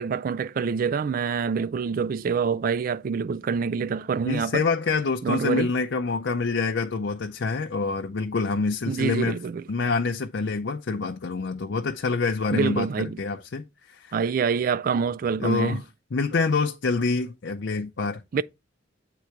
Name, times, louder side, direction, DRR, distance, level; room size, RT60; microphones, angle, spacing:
voice 1, 0.0-4.6 5.2-5.7 8.9-9.6 12.5-13.2 14.1-15.8 18.3-18.4, right 6 dB, 50° right, 0.3 m, -26 dB
voice 2, 4.3-9.4 9.7-14.1 15.4-15.8 16.1-18.4, left 4 dB, 65° left, 0.5 m, -26 dB
8.4 x 3.8 x 4.5 m
head